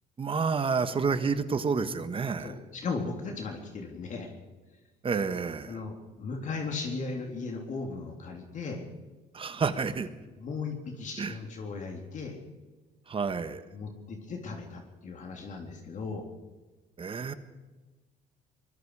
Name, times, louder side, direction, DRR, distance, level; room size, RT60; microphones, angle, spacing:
voice 1, 0.2-2.5 5.0-5.8 9.3-10.1 11.2-11.4 13.1-13.6 17.0-17.3, right 5 dB, 30° right, 11 dB, 1.5 m, -29 dB
voice 2, 2.4-4.3 5.7-8.8 10.4-12.4 13.7-16.3, left 4 dB, 45° left, 2 dB, 3.5 m, -37 dB
23.5 x 22.0 x 5.0 m, 1.2 s
cardioid pair, 110°, 17 cm